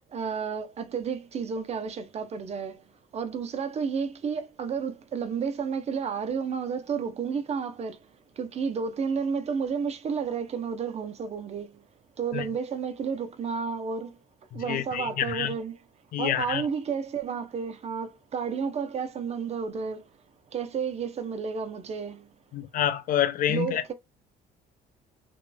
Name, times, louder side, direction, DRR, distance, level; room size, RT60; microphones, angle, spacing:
voice 1, 0.1-11.9 12.2-14.2 14.5-15.9 16.2-20.1 20.5-22.3 23.5-23.9, right 6 dB, 40° right, 0.6 m, -31 dB
voice 2, 14.5-15.5 16.1-16.6 22.5-23.8, left 11 dB, 55° left, 0.5 m, -27 dB
3.0 x 2.9 x 2.2 m
cardioid pair, 110°, 17 cm